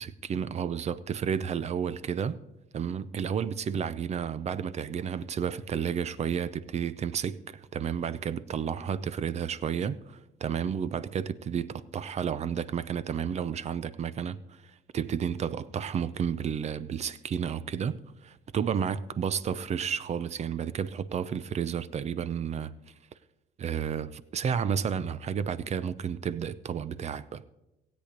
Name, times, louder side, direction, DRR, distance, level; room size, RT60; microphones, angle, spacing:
voice 1, 0.0-2.4 2.7-14.6 14.9-22.7 23.6-27.4, right 7 dB, 40° right, 0.7 m, -31 dB
16.5 x 8.4 x 5.1 m
cardioid pair, 110°, 17 cm